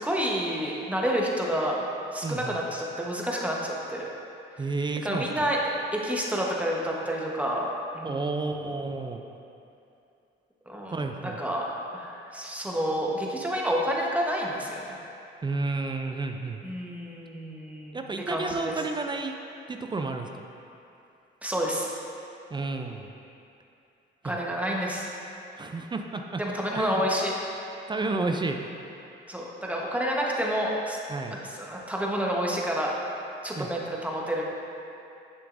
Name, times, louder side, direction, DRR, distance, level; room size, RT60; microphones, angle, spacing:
voice 1, 0.0-1.8 2.1-4.1 5.0-7.7 7.9-8.5 10.7-15.0 16.6-18.0 18.3-18.8 21.4-21.9 24.2-25.1 26.4-27.4 29.3-31.0 31.3-32.9 33.4-34.4, equal, 5° right, -2 dB, 1.1 m, -29 dB
voice 2, 2.2-2.6 4.6-5.5 8.0-9.2 10.9-11.4 15.4-16.6 17.9-19.3 19.7-20.3 22.5-23.1 24.2-24.4 25.6-26.4 26.7-27.0 27.9-28.7 31.1-31.4 33.6-33.7, right 3 dB, 25° right, 4 dB, 0.4 m, -31 dB
9.1 x 6.8 x 2.6 m, 2.7 s
cardioid pair, 90°, 20 cm